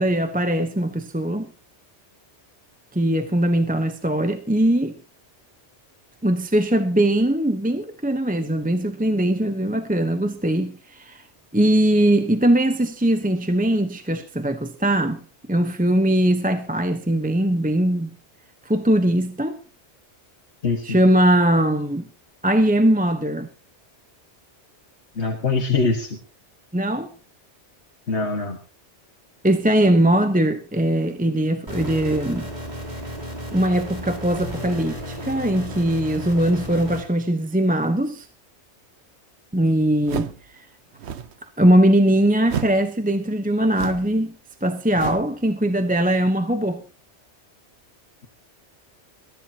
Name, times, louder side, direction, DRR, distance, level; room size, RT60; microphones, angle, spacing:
voice 1, 0.0-1.5 2.9-4.9 6.2-11.2 11.5-15.2 15.5-18.1 18.6-19.6 20.8-22.1 22.4-23.5 26.7-27.1 29.4-32.5 33.5-38.3 39.5-40.3 41.6-44.4 44.6-46.8, right 1 dB, 10° right, 0.9 m, -20 dB
voice 2, 20.6-21.0 25.2-26.2 28.1-28.6, left 4 dB, 70° left, 2.0 m, -23 dB
sound 1, 31.7-37.0, equal, 40° right, 3.2 m, -33 dB
sound 2, 40.0-40.5 40.9-41.4 42.4-42.9 43.7-44.2 44.9-45.4, right 8 dB, 70° right, 1.1 m, -31 dB
21.5 x 14.0 x 2.9 m
omnidirectional pair, 1.2 m